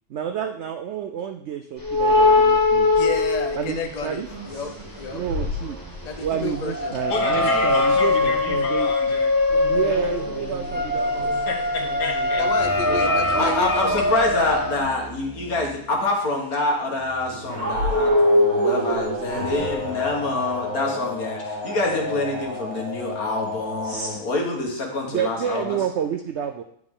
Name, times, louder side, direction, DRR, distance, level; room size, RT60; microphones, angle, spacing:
voice 1, 0.1-2.9 3.5-4.3 5.1-5.8 6.2-8.9 9.7-11.4 12.9-14.0 25.1-26.6, right 9 dB, 75° right, 0.6 m, -29 dB
sound 1, 1.8-4.3 4.6-14.8, left 2 dB, 15° left, 0.7 m, -22 dB
voice 2, 2.9-5.2 6.0-7.0 12.3-14.0 19.2-19.6, left 5 dB, 45° left, 0.5 m, -32 dB
sound 2, 4.3-6.6 7.7-8.7 9.5-16.0 17.0-24.2, left 1 dB, 55° right, 2.4 m, -28 dB
voice 3, 7.1-9.3 11.2-12.4 13.2-13.3, left 3 dB, 80° left, 2.0 m, -30 dB
voice 4, 13.4-25.8, left 2 dB, 65° left, 1.9 m, -26 dB
9.7 x 4.7 x 3.7 m
omnidirectional pair, 1.7 m